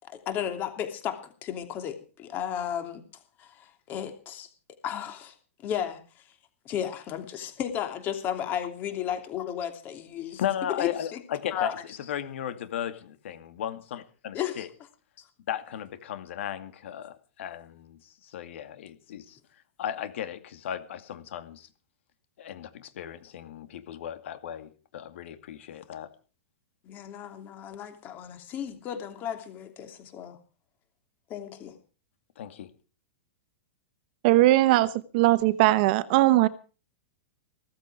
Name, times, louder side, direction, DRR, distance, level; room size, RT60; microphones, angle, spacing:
voice 1, 0.0-3.0 3.4-4.5 4.8-5.3 5.6-6.0 6.6-11.2 11.5-11.7 14.3-14.7 26.8-30.4 31.3-31.8, left 9 dB, 25° left, 2.9 m, -34 dB
voice 2, 10.4-14.7 15.5-19.4 19.8-21.7 22.4-26.1 32.4-32.7, left 10 dB, 65° left, 2.3 m, -36 dB
voice 3, 34.2-36.5, right 17 dB, 45° right, 1.1 m, -20 dB
16.0 x 14.5 x 4.9 m
supercardioid pair, 160°, 7 cm